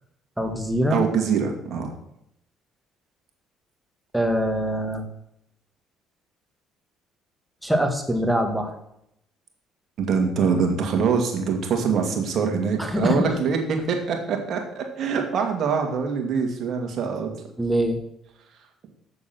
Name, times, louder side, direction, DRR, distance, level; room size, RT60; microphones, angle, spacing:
voice 1, 0.4-1.0 4.1-5.1 7.6-8.7 12.8-13.4 17.6-18.0, equal, 5° right, 5 dB, 1.9 m, -23 dB
voice 2, 0.9-1.9 10.0-17.3, right 6 dB, 60° right, 3 dB, 2.0 m, -24 dB
6.9 x 6.9 x 6.0 m, 0.78 s
hypercardioid pair, 65°, 0 cm